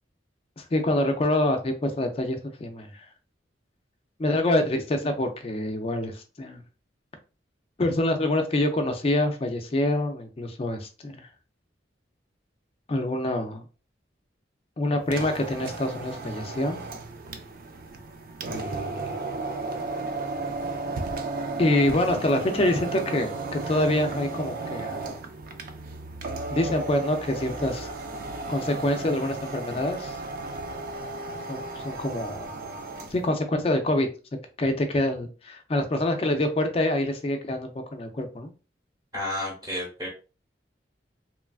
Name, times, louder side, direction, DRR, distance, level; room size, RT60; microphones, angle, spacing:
voice 1, 0.6-2.9 4.2-6.6 7.8-11.3 12.9-13.6 14.8-16.8 18.5-19.2 21.6-25.0 26.5-27.9 28.5-30.2 31.5-32.5 33.1-34.1 34.6-38.5, left 1 dB, 30° left, 0.4 m, -26 dB
sound 1, 15.0-33.3, right 3 dB, 50° right, 0.3 m, -34 dB
voice 2, 39.1-40.1, left 1 dB, 20° right, 0.9 m, -31 dB
3.0 x 2.3 x 2.3 m
head